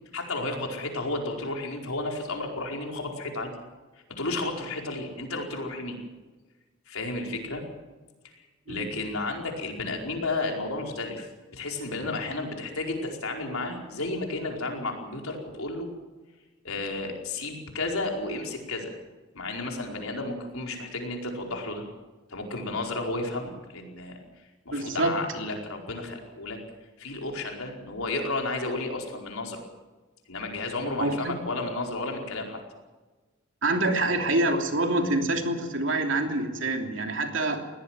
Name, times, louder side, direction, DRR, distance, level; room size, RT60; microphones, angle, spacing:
voice 1, 0.1-3.5 4.1-6.0 6.9-7.6 8.2-15.9 16.6-18.9 19.3-21.8 22.3-24.2 24.6-26.6 27.0-29.6 30.3-32.6, left 2 dB, 90° left, 1 dB, 4.8 m, -32 dB
voice 2, 24.7-25.2 31.0-31.3 33.6-37.7, right 2 dB, 60° right, 3 dB, 3.1 m, -26 dB
21.5 x 18.0 x 7.6 m, 1.2 s
head